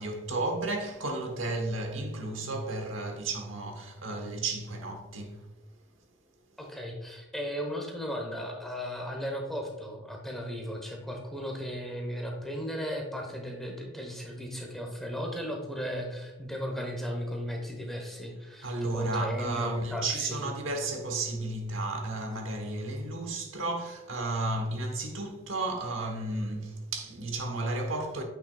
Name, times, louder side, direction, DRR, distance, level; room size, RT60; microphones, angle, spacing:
voice 1, 0.0-5.4 18.6-28.2, right 2 dB, 75° right, 1.1 m, -33 dB
voice 2, 6.6-20.4, equal, ahead, 0.9 m, -36 dB
8.7 x 6.0 x 2.3 m
head